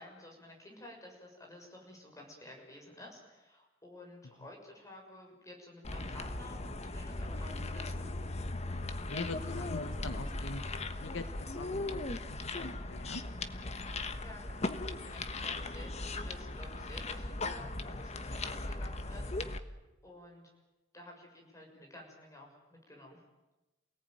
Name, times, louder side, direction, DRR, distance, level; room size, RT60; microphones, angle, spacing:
voice 1, 0.0-8.1 14.2-19.7 20.0-20.5 20.9-23.2, left 1 dB, 15° left, 0 dB, 6.5 m, -52 dB
sound 1, 5.8-19.6, left 2 dB, 35° left, 1.3 m, -38 dB
voice 2, 9.1-11.3 11.5-12.0 12.3-13.2, left 2 dB, 75° left, 9 dB, 1.3 m, -43 dB
28.5 x 18.0 x 9.3 m, 1.1 s
head